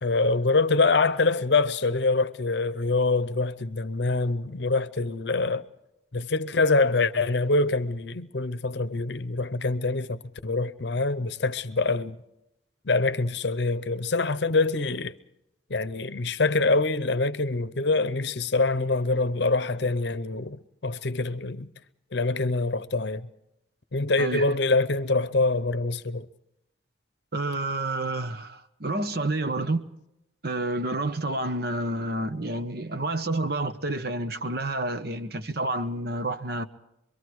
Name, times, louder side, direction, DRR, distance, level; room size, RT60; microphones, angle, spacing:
voice 1, 0.0-5.7 6.1-12.2 12.8-15.1 15.7-21.7 22.1-23.3 23.9-26.3, left 3 dB, 60° left, 0.8 m, -25 dB
voice 2, 27.3-29.9 30.4-36.6, right 2 dB, 50° right, 1.0 m, -29 dB
25.0 x 23.0 x 4.7 m
head